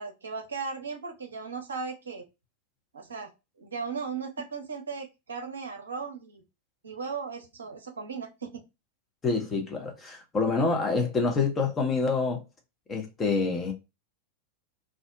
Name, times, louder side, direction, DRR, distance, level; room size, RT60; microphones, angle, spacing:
voice 1, 0.0-2.2 2.9-3.3 3.6-6.4 6.8-8.6, right 5 dB, 70° right, 0.6 m, -37 dB
voice 2, 9.2-12.4 12.9-13.7, left 4 dB, 20° left, 0.7 m, -27 dB
2.5 x 2.1 x 3.4 m
figure-of-eight pair, 90°, 0 cm